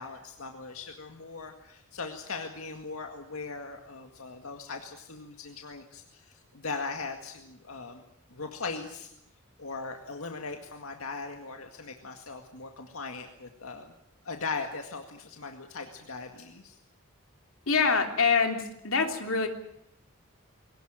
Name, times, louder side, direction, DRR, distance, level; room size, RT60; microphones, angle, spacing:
voice 1, 0.0-8.0 8.3-9.1 9.6-13.9 14.2-16.8, left 4 dB, 90° left, 4 dB, 2.0 m, -39 dB
voice 2, 17.7-19.5, left 5 dB, 70° left, 4 dB, 3.2 m, -25 dB
22.0 x 18.5 x 9.0 m, 0.77 s
head